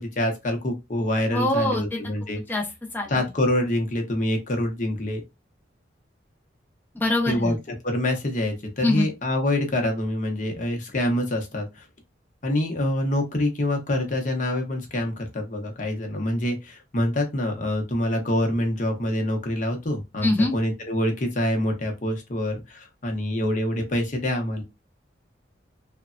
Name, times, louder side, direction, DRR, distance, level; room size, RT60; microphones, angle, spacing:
voice 1, 0.2-2.4 3.1-5.2 7.3-7.6 7.8-11.6 12.4-16.6 16.9-22.5 23.0-24.6, left 1 dB, 40° left, 0.8 m, -25 dB
voice 2, 1.3-2.0 2.5-2.6 2.9-3.2 6.9-7.6 8.8-9.1 20.2-20.5, left 2 dB, 10° left, 0.6 m, -23 dB
3.2 x 2.1 x 2.4 m
head